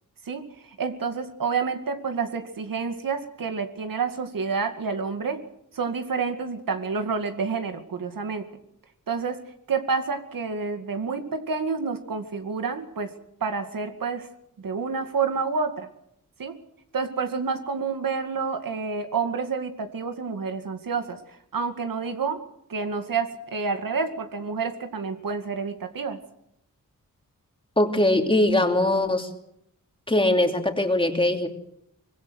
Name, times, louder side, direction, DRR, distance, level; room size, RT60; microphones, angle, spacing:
voice 1, 0.3-5.4 5.7-8.5 9.1-13.1 13.4-14.3 14.6-15.9 16.4-16.6 16.9-21.2 21.5-22.4 22.7-26.2, right 5 dB, 75° right, 6 dB, 2.3 m, -29 dB
voice 2, 27.8-29.3 30.1-31.5, left 1 dB, 15° left, 3 dB, 2.9 m, -21 dB
24.5 x 20.5 x 6.4 m, 0.75 s
wide cardioid pair, 110°, 34 cm